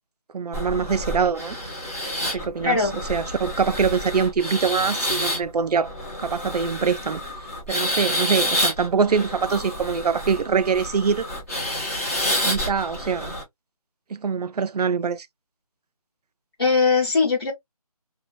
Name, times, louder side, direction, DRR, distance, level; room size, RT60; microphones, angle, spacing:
voice 1, 0.3-1.6 2.2-2.8 3.1-5.9 6.2-7.2 7.7-11.3 12.4-13.3 14.1-15.3, right 6 dB, 80° right, 0.5 m, -24 dB
sound 1, 0.5-13.4, equal, 20° left, 0.9 m, -29 dB
voice 2, 2.3-3.0 16.6-17.5, left 4 dB, 40° left, 1.0 m, -21 dB
2.6 x 2.3 x 2.4 m
figure-of-eight pair, 180°, 20 cm